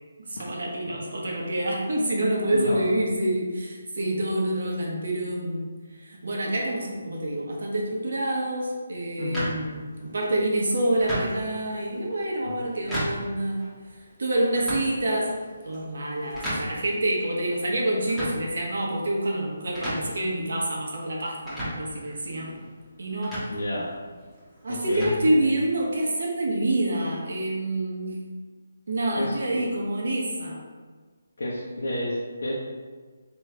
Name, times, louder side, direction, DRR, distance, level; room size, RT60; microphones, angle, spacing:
voice 1, 0.2-5.7 5.9-13.6 13.9-15.4 15.6-22.5 23.0-23.4 24.6-28.2 28.9-30.6, right 1 dB, 70° right, -2 dB, 1.0 m, -27 dB
voice 2, 9.2-9.5 12.4-12.5 23.5-23.9 24.7-25.6 29.2-29.3 31.4-32.5, left 1 dB, 80° left, -5 dB, 0.8 m, -30 dB
sound 1, 9.3-26.0, equal, ahead, 1.0 m, -37 dB
3.2 x 3.0 x 3.6 m, 1.5 s
hypercardioid pair, 160°, 0 cm